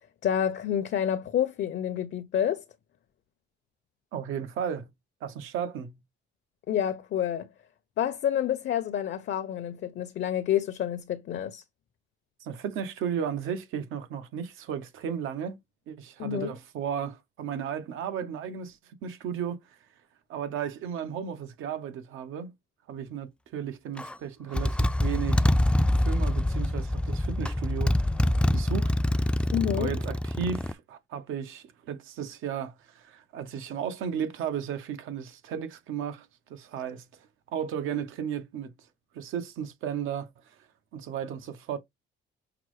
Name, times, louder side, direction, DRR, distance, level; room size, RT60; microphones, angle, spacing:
voice 1, 0.2-2.6 6.7-7.5 8.0-11.6 16.2-16.5 29.5-29.9, left 10 dB, 65° left, 0.6 m, -28 dB
voice 2, 4.1-4.9 5.2-6.0 12.4-15.6 15.9-19.6 20.3-22.5 22.9-25.4 26.0-28.1 28.5-29.5 29.7-37.1 37.5-38.7 39.1-40.3 40.9-41.8, right 8 dB, 85° right, 0.9 m, -34 dB
Motorcycle, 24.0-24.1 24.5-30.7, left 1 dB, 5° left, 0.3 m, -25 dB
5.8 x 2.1 x 3.1 m
cardioid pair, 90°, 20 cm